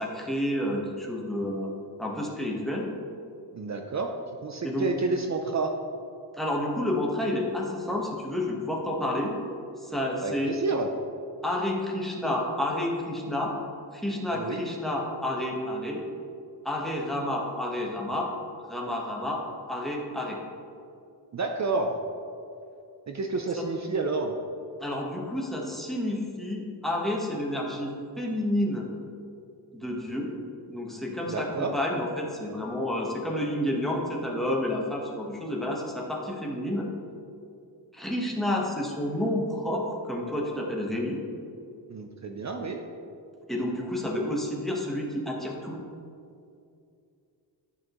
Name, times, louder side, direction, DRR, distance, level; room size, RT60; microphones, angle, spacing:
voice 1, 0.0-1.7 2.0-2.9 4.6-4.9 6.4-9.4 9.8-10.5 11.4-13.5 13.9-16.0 16.6-18.3 18.7-20.4 23.6-23.7 24.8-28.9 29.7-30.3 30.7-36.9 37.9-41.2 43.5-45.8, left 1 dB, ahead, -3 dB, 1.2 m, -30 dB
voice 2, 3.5-4.1 4.4-5.7 10.2-10.9 14.3-14.7 21.3-22.0 23.1-24.3 31.3-31.7 41.9-42.8, right 3 dB, 40° right, 4 dB, 0.6 m, -29 dB
10.5 x 6.1 x 3.1 m, 2.5 s
wide cardioid pair, 110°, 42 cm